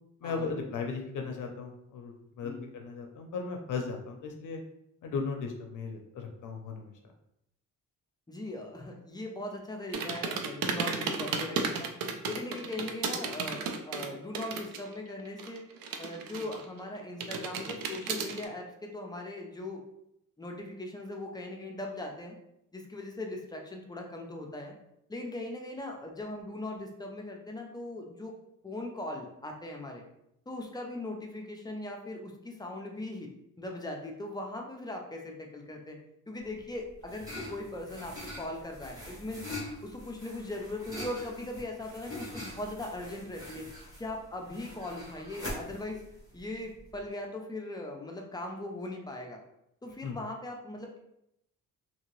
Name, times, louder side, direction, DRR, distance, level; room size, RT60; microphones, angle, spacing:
voice 1, 0.2-4.6 5.0-6.9 50.0-50.2, left 4 dB, 65° left, 3 dB, 0.5 m, -36 dB
voice 2, 8.3-11.9 12.3-15.6 16.0-19.8 20.4-22.4 22.7-24.8 25.1-28.3 28.6-30.1 30.5-33.3 33.6-36.0 36.3-39.4 39.8-43.7 44.0-46.0 46.3-49.4 49.8-51.0, left 1 dB, 15° left, 1 dB, 0.3 m, -39 dB
sound 1, 9.9-14.9 15.2-16.8 17.2-18.4, right 5 dB, 90° right, 0.5 m, -34 dB
sound 2, 36.4-47.0, left 1 dB, 10° right, 1.1 m, -43 dB
2.8 x 2.7 x 3.0 m, 0.79 s
wide cardioid pair, 165°, 33 cm